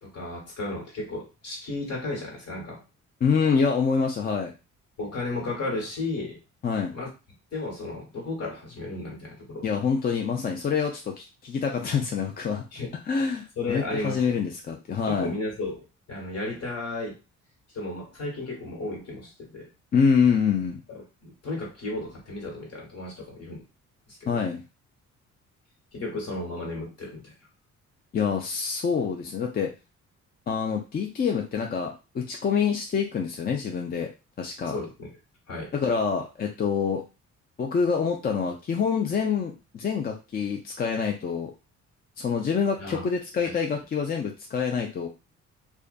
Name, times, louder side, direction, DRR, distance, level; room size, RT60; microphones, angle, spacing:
voice 1, 0.0-2.8 5.0-6.4 6.9-7.1 7.5-9.6 12.7-12.9 13.6-14.5 15.1-17.2 17.7-19.7 20.9-23.6 24.1-24.4 25.9-27.3 34.7-35.1 35.5-35.7 42.8-43.1 43.4-43.5, left 2 dB, 55° left, -1 dB, 1.4 m, -34 dB
voice 2, 3.2-4.5 6.6-6.9 9.6-12.6 13.1-15.3 19.9-20.8 24.3-24.6 28.1-29.7 30.5-34.1 34.4-34.7 35.7-37.0 37.6-41.5 42.2-45.1, left 6 dB, 30° left, 2 dB, 0.4 m, -26 dB
2.4 x 2.3 x 2.4 m, 0.29 s
cardioid pair, 90°, 30 cm